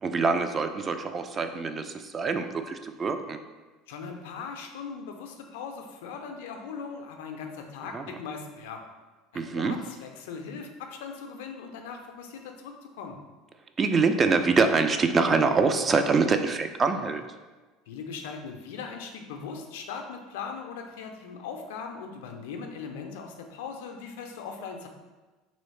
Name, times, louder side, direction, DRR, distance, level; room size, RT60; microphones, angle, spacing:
voice 1, 0.0-3.4 7.9-8.0 9.3-9.8 13.8-17.2, right 4 dB, 30° right, 7 dB, 0.3 m, -25 dB
voice 2, 3.9-8.8 9.3-13.2 17.9-24.9, left 5 dB, 65° left, 4 dB, 0.4 m, -39 dB
3.1 x 3.0 x 4.1 m, 1.3 s
figure-of-eight pair, 65°, 0 cm